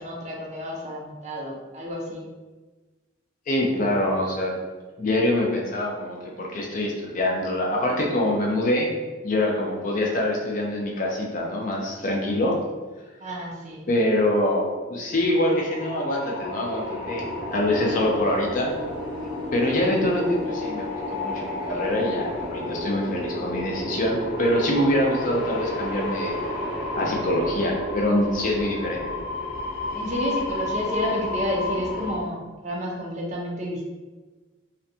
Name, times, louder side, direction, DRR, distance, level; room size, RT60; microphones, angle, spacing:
voice 1, 0.0-2.2 13.2-13.9 29.9-33.9, equal, 35° right, -2 dB, 0.5 m, -30 dB
voice 2, 3.5-4.6 5.0-8.9 9.2-12.6 13.9-17.2 17.5-18.7 19.5-26.4 26.9-29.0, left 1 dB, 40° left, -1 dB, 0.4 m, -24 dB
sound 1, 15.1-32.2, left 1 dB, 75° left, 0.7 m, -31 dB
2.5 x 2.2 x 2.6 m, 1.3 s
head